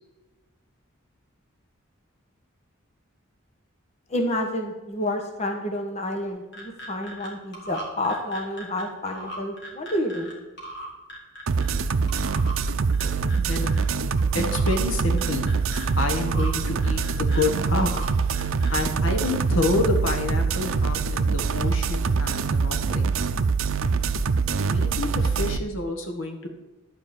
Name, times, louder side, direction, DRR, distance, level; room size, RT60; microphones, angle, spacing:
voice 1, 4.1-10.3, left 1 dB, 30° left, 2 dB, 1.2 m, -29 dB
sound 1, 6.3-7.3 7.5-10.3 10.6-11.8 12.1-12.6 12.9-13.8 14.2-14.8 15.2-15.9 16.2-16.5 16.8-18.1 18.3-18.9, right 1 dB, 55° left, 2.7 m, -39 dB
sound 2, 11.5-25.6, right 5 dB, 80° right, 0.5 m, -24 dB
voice 2, 13.4-13.8 14.3-15.5 16.0-18.0 18.7-23.1 24.6-26.5, left 2 dB, 80° left, 4 dB, 1.5 m, -28 dB
11.5 x 5.2 x 7.2 m, 1.1 s
head